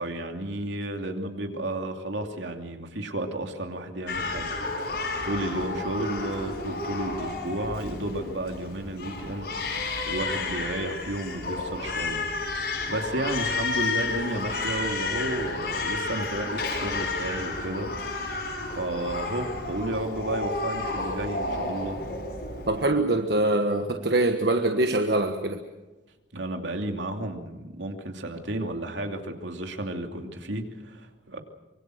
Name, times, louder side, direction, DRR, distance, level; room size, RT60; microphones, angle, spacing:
voice 1, 0.0-4.5 4.8-12.2 12.5-17.9 18.2-22.0 26.3-31.4, right 1 dB, 80° right, 4 dB, 2.8 m, -32 dB
Crying sobbing, 4.1-22.9, left 3 dB, 60° left, 6.5 m, -31 dB
voice 2, 22.7-25.6, right 2 dB, 60° right, 5 dB, 1.4 m, -24 dB
25.5 x 24.0 x 6.4 m, 1.1 s
head